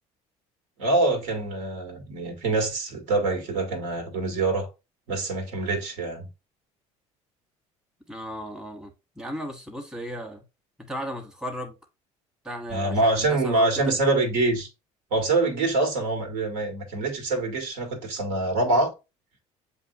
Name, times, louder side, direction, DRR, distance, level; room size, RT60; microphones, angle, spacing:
voice 1, 0.8-4.7 5.1-6.3 12.7-14.7 15.1-18.9, right 2 dB, 80° right, 1.7 m, -25 dB
voice 2, 8.1-8.9 9.2-10.4 10.8-11.7 12.4-13.9, equal, 5° right, 1.1 m, -35 dB
7.4 x 2.7 x 2.7 m
supercardioid pair, 90°, 14 cm